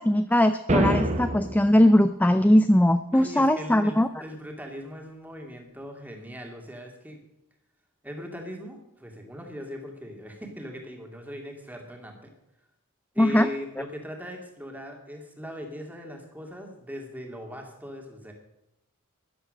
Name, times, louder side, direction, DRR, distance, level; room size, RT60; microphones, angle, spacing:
voice 1, 0.0-4.1 13.2-13.5, left 1 dB, 5° left, 10 dB, 0.4 m, -20 dB
sound 1, 0.7-1.7, right 1 dB, 30° right, 1.0 m, -24 dB
voice 2, 3.1-7.2 8.0-12.3 13.1-18.3, equal, 10° right, 2 dB, 2.3 m, -40 dB
13.5 x 11.0 x 6.4 m, 0.86 s
head